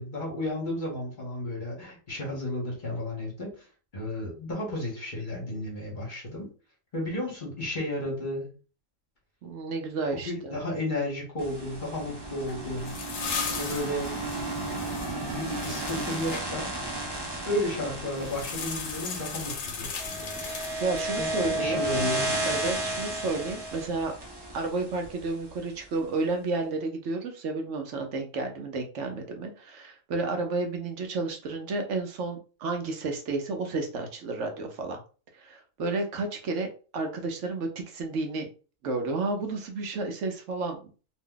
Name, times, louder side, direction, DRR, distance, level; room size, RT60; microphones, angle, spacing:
voice 1, 0.0-3.7 3.9-6.5 6.9-8.5 10.1-12.9 13.5-14.1 15.2-16.9 17.4-20.4 21.2-22.5, left 1 dB, 40° left, -2 dB, 1.1 m, -33 dB
voice 2, 9.4-10.6 20.8-21.8 22.4-24.1 24.5-35.0 35.3-38.5 38.8-40.9, right 3 dB, 70° right, 4 dB, 0.9 m, -31 dB
sound 1, 11.4-25.6, right 1 dB, 40° right, 0.3 m, -33 dB
sound 2, 12.5-16.5 18.2-21.1, left 6 dB, 75° left, 1.0 m, -37 dB
2.7 x 2.1 x 3.7 m, 0.37 s
omnidirectional pair, 1.4 m